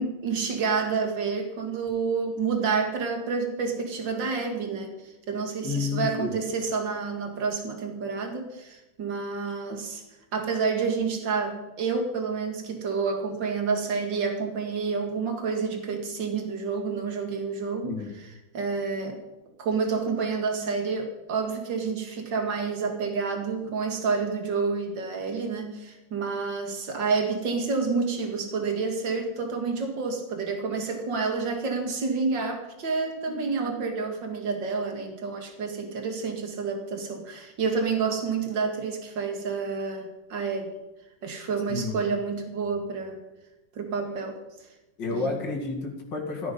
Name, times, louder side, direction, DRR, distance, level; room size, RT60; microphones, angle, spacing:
voice 1, 0.0-10.0 10.3-19.2 19.6-40.7 41.2-43.2 43.8-44.4 45.1-45.3, right 5 dB, 70° right, 4 dB, 2.8 m, -29 dB
voice 2, 5.6-6.3 17.8-18.1 41.7-42.0 45.0-46.5, left 4 dB, 65° left, 1 dB, 3.1 m, -30 dB
14.5 x 13.5 x 5.4 m, 1.0 s
omnidirectional pair, 2.1 m